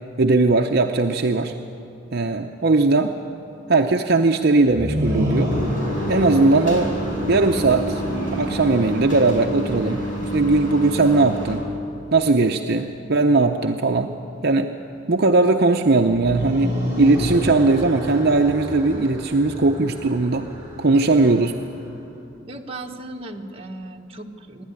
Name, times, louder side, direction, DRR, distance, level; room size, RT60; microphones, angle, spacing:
voice 1, 0.2-1.5 2.1-3.1 3.7-5.5 6.1-6.9 7.3-8.0 8.4-11.6 12.1-14.1 14.4-14.7 15.1-20.5 20.8-21.5, right 3 dB, 55° right, 4 dB, 0.7 m, -19 dB
sound 1, 4.6-9.8 16.1-21.7, equal, 10° right, 7.3 m, -29 dB
sound 2, 5.5-11.6, right 1 dB, 45° left, 4.8 m, -29 dB
voice 2, 22.5-24.6, right 2 dB, 30° right, 2 dB, 1.5 m, -36 dB
26.5 x 12.0 x 9.8 m, 2.8 s
head